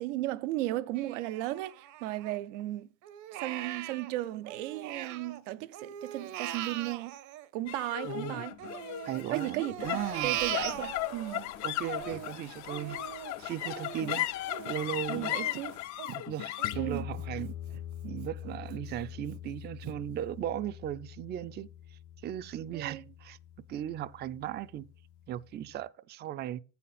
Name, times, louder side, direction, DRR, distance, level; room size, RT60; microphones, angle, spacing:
voice 1, 0.0-2.9 3.3-7.2 7.5-8.6 9.3-11.5 15.1-15.8 16.8-17.1 22.7-23.0, right 16 dB, 90° right, 0.6 m, -35 dB
Crying sobbing, 1.0-2.6 3.0-5.4 5.7-8.1 8.6-11.4 11.8-17.3 17.7-17.8 18.2-18.8 19.3-19.4 19.8-20.0, right 12 dB, 55° right, 0.7 m, -40 dB
sound 1, 7.7-24.2, left 15 dB, 55° left, 0.5 m, -38 dB
voice 2, 8.0-8.4 9.0-10.4 11.6-13.0 13.4-14.3 14.7-15.3 16.0-17.6 18.0-21.7 22.2-23.4 23.7-24.9 25.3-26.6, right 11 dB, 30° right, 0.4 m, -37 dB
sound 2, 9.8-15.8, left 7 dB, 75° left, 2.0 m, -51 dB
8.4 x 4.2 x 5.6 m
supercardioid pair, 105°, 36 cm